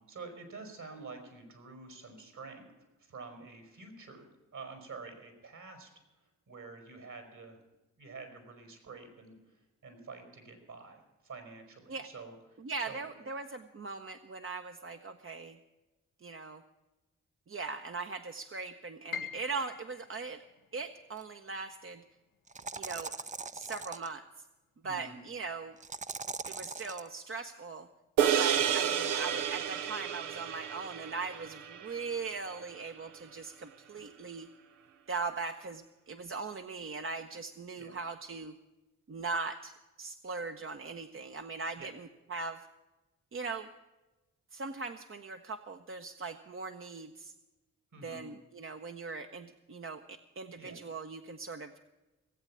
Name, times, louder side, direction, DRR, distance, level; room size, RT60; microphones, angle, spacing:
voice 1, 0.0-2.7 3.0-5.9 6.5-7.6 8.0-12.3 12.9-13.3 24.8-25.1 28.5-28.7 37.8-38.0 41.8-41.9 47.9-48.2 50.6-50.8, right 4 dB, 65° right, 6 dB, 4.6 m, -48 dB
voice 2, 12.6-15.6 16.2-16.6 17.5-20.4 20.7-22.0 22.8-23.1 23.5-24.3 24.8-25.7 26.5-27.9 28.2-34.5 35.1-38.5 39.1-42.7 43.3-43.7 44.5-47.3 48.0-51.7, right 4 dB, 40° right, 6 dB, 0.9 m, -40 dB
Piano, 19.1-25.1 25.4-26.5 26.9-27.0 27.8-28.1, left 7 dB, 85° left, 0.9 m, -48 dB
sound 1, 21.2-21.3 22.5-24.1 25.8-27.1, right 4 dB, 25° right, 0.5 m, -41 dB
sound 2, 28.2-32.8, right 9 dB, 80° right, 0.8 m, -31 dB
18.0 x 8.3 x 8.5 m, 1.1 s
supercardioid pair, 45°, 32 cm